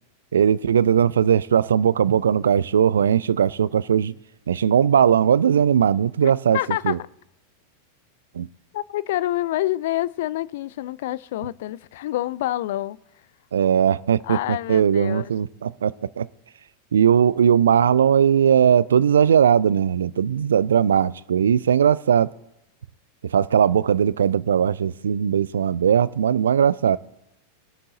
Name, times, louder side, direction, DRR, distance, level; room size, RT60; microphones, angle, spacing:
voice 1, 0.3-4.1 4.5-6.6 6.8-7.0 8.3-8.5 13.5-14.4 14.7-16.3 16.9-22.3 23.2-27.0, right 8 dB, 65° right, 0.3 m, -19 dB
voice 2, 6.2-7.0 8.7-13.0 14.2-15.3, left 15 dB, 55° left, 0.3 m, -27 dB
21.5 x 7.5 x 3.9 m
figure-of-eight pair, 90°, 0 cm